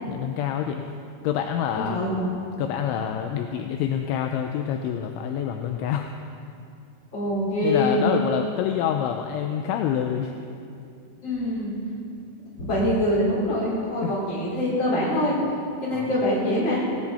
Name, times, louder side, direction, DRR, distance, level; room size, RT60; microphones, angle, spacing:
voice 1, 0.1-0.8 1.2-2.0 2.6-6.1 7.6-10.4 14.0-14.2 15.9-16.2, left 9 dB, 80° left, 4 dB, 2.9 m, -27 dB
voice 2, 1.7-2.1 7.1-8.0 11.2-11.7 12.6-15.3 15.8-16.9, left 1 dB, 25° left, -7 dB, 4.9 m, -24 dB
19.5 x 17.0 x 4.2 m, 2.5 s
omnidirectional pair, 5.7 m